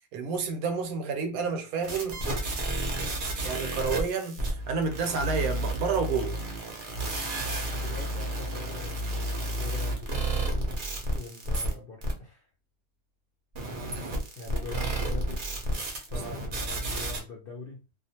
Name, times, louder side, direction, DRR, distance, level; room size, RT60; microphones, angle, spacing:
voice 1, 0.1-2.2 3.4-6.4, right 5 dB, 75° right, 1.0 m, -30 dB
sound 1, 1.8-11.7 12.0-12.1 13.5-17.2, right 1 dB, 50° right, 0.6 m, -31 dB
voice 2, 7.7-10.7 11.1-12.5 13.9-15.6 15.9-17.8, left 3 dB, 60° left, 0.6 m, -43 dB
2.4 x 2.3 x 2.7 m
omnidirectional pair, 1.6 m